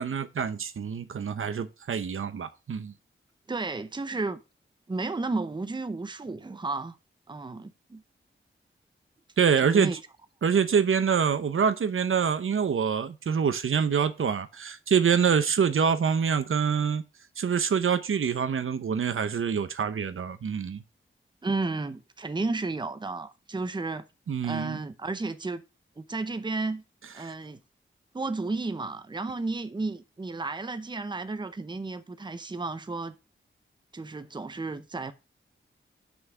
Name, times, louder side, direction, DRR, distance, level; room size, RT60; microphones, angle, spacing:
voice 1, 0.0-2.9 9.4-9.9 10.4-17.0 17.4-20.8 24.3-24.8 27.2-27.3, right 7 dB, 75° right, 0.8 m, -25 dB
voice 2, 3.5-4.4 4.9-7.0 7.3-8.0 9.6-10.0 21.4-24.0 24.4-25.6 26.0-26.8 27.1-27.6 28.1-33.2 33.9-35.1, right 3 dB, 20° right, 0.7 m, -32 dB
6.2 x 5.6 x 7.1 m
wide cardioid pair, 130°, 21 cm